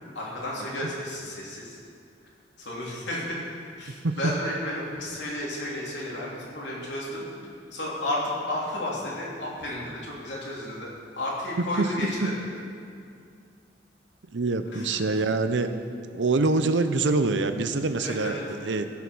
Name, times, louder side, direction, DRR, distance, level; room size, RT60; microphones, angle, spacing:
voice 1, 0.1-1.8 2.6-3.4 3.8-7.2 7.7-12.3 14.7-15.0 18.0-18.4, left 1 dB, 80° left, -4 dB, 3.0 m, -32 dB
voice 2, 14.3-15.7 16.1-18.8, right 3 dB, 85° right, 9 dB, 0.7 m, -25 dB
15.5 x 5.9 x 6.2 m, 2.3 s
head